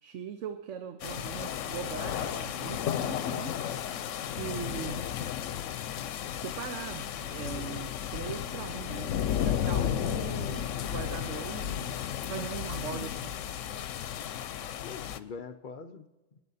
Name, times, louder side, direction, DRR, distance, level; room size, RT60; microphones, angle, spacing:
voice 1, 0.0-3.5 4.4-5.0 6.4-12.0 12.3-13.4, right 8 dB, 75° right, 9 dB, 1.1 m, -40 dB
sound 1, 1.0-15.2, left 10 dB, 85° left, 1.0 m, -33 dB
voice 2, 12.9-13.5 14.8-16.4, left 5 dB, 50° left, 10 dB, 0.7 m, -44 dB
25.5 x 10.0 x 4.1 m, 1.1 s
omnidirectional pair, 1.3 m